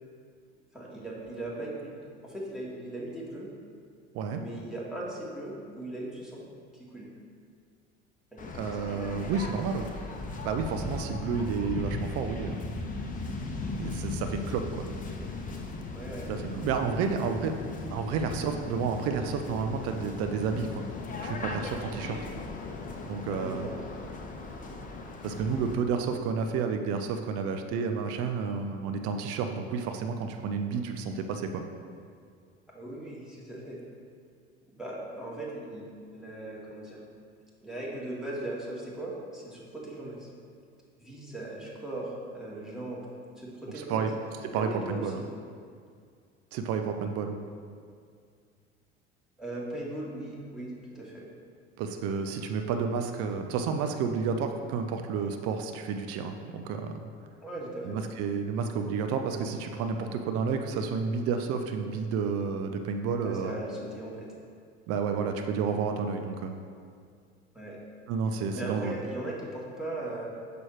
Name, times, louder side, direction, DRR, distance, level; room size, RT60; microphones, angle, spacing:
voice 1, 0.7-2.0 2.2-3.5 4.3-6.4 6.7-7.1 8.3-8.8 15.9-16.3 22.0-22.2 23.3-24.1 32.7-33.8 34.7-37.0 37.6-40.3 41.0-43.0 43.4-44.0 44.4-45.0 49.4-51.2 57.4-58.0 63.2-64.3 67.5-67.8 68.5-70.3, right 1 dB, ahead, -6 dB, 1.8 m, -39 dB
Waves surf, 8.4-25.8, left 3 dB, 25° left, 0.8 m, -37 dB
voice 2, 8.5-9.9 10.4-12.5 13.8-14.8 16.3-17.6 17.9-20.7 21.2-22.2 23.1-23.7 25.2-31.6 43.7-44.1 44.4-45.2 46.5-47.4 51.8-57.0 57.8-63.5 64.9-66.6 68.1-68.9, right 5 dB, 45° right, 6 dB, 0.6 m, -31 dB
6.1 x 5.1 x 4.5 m, 2.2 s
figure-of-eight pair, 65°, 33 cm